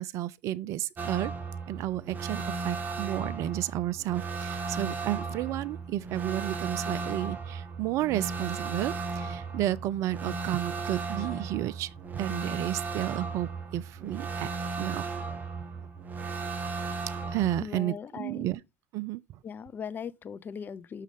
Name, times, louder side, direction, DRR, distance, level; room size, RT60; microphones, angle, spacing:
voice 1, 0.0-1.3 1.7-14.5 14.8-15.0 15.8-15.9 17.3-18.6 18.9-19.2, right 14 dB, 50° right, 0.5 m, -32 dB
sound 1, 1.0-17.6, right 4 dB, 30° right, 1.5 m, -35 dB
voice 2, 17.6-18.5 19.4-21.0, left 7 dB, 30° left, 0.6 m, -39 dB
6.4 x 6.3 x 3.5 m
hypercardioid pair, 75°, 6 cm